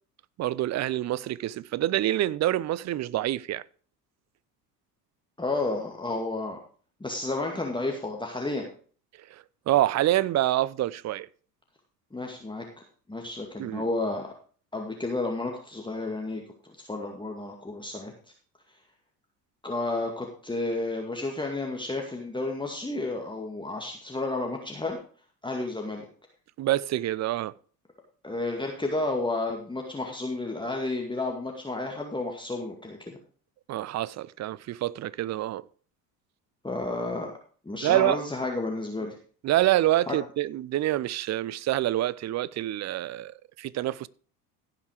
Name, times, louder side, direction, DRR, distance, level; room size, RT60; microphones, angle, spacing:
voice 1, 0.4-3.6 9.3-11.3 13.6-13.8 26.6-27.5 33.7-35.6 37.8-38.2 39.4-44.1, right 14 dB, 35° right, 0.6 m, -26 dB
voice 2, 5.4-6.6 7.0-8.7 12.1-12.7 13.1-14.3 14.7-16.4 16.8-18.1 19.6-25.0 25.4-26.0 28.2-33.2 36.6-37.3 37.7-39.2 40.1-40.2, left 2 dB, 10° left, 2.1 m, -31 dB
16.0 x 5.9 x 4.9 m
hypercardioid pair, 70°, 48 cm